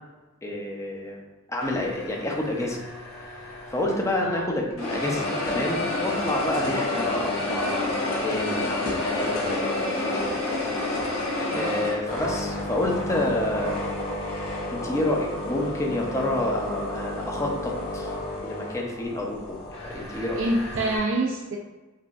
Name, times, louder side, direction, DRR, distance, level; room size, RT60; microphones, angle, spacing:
voice 1, 0.4-1.2 1.5-2.8 3.3-3.4 3.7-10.2 11.5-13.8 14.7-18.1 18.4-19.6 19.8-20.4, left 1 dB, 15° left, -1 dB, 0.6 m, -29 dB
sound 1, 1.6-4.4 4.8-21.0, left 2 dB, 80° left, 1.2 m, -30 dB
voice 2, 4.2-4.5 11.5-11.8 20.4-21.6, right 2 dB, 65° right, -2 dB, 0.5 m, -26 dB
5.6 x 2.5 x 2.5 m, 1.1 s
head